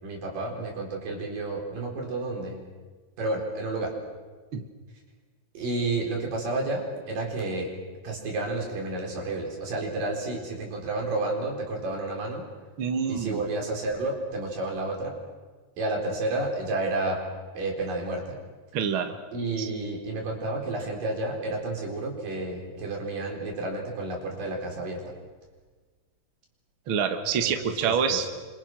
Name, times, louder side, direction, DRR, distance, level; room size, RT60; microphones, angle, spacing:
voice 1, 0.0-2.6 3.2-4.0 5.5-7.7 8.0-12.5 13.1-15.1 15.8-17.2 17.5-18.4 19.3-25.1 27.4-28.3, right 2 dB, 70° right, 0 dB, 6.1 m, -31 dB
voice 2, 12.8-13.4 18.7-19.2 19.6-19.7 26.9-28.3, right 7 dB, 50° right, 7 dB, 1.8 m, -26 dB
29.0 x 25.5 x 6.1 m, 1.4 s
omnidirectional pair, 4.0 m